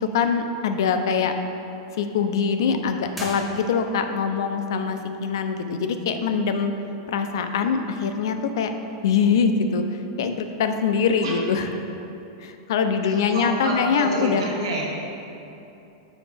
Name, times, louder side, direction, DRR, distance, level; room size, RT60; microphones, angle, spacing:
voice 1, 0.0-1.3 2.0-6.7 7.1-8.8 9.0-11.7 12.4-14.4, left 6 dB, 75° left, 7 dB, 0.5 m, -23 dB
sound 1, 3.1-4.2, equal, ahead, 1.0 m, -38 dB
voice 2, 13.1-14.8, right 1 dB, 90° right, -3 dB, 1.5 m, -28 dB
7.2 x 4.9 x 3.4 m, 2.9 s
supercardioid pair, 155°, 2 cm